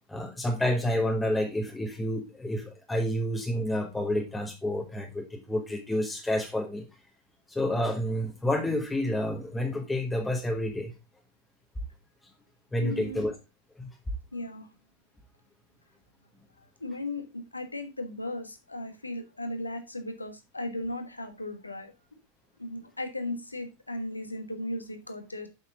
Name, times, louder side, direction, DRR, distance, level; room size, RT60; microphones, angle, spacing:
voice 1, 0.1-6.8 7.5-10.9 12.7-13.3 13.8-13.9, left 1 dB, 10° left, 2 dB, 1.3 m, -29 dB
voice 2, 12.8-13.3 14.3-14.7 16.8-21.9 22.6-25.5, left 1 dB, 80° left, 7 dB, 1.3 m, -36 dB
7.5 x 6.0 x 3.8 m, 0.26 s
figure-of-eight pair, 90°, 0 cm